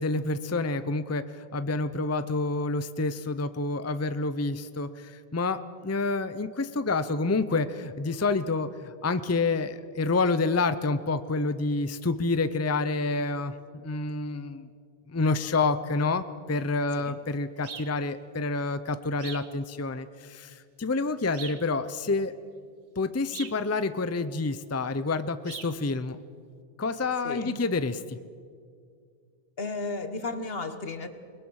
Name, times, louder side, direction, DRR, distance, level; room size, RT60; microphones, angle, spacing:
voice 1, 0.0-13.5 13.8-14.7 15.1-22.3 23.0-26.2 26.8-28.2, left 3 dB, 20° left, 12 dB, 0.6 m, -28 dB
sound 1, 17.6-18.0 19.2-19.5 21.3-21.7 23.3-23.6 25.4-25.8, right 6 dB, 80° right, 1.3 m, -41 dB
voice 2, 27.2-27.6 29.6-31.1, left 3 dB, 70° left, 9 dB, 1.7 m, -34 dB
29.0 x 20.5 x 6.4 m, 2.2 s
omnidirectional pair, 1.1 m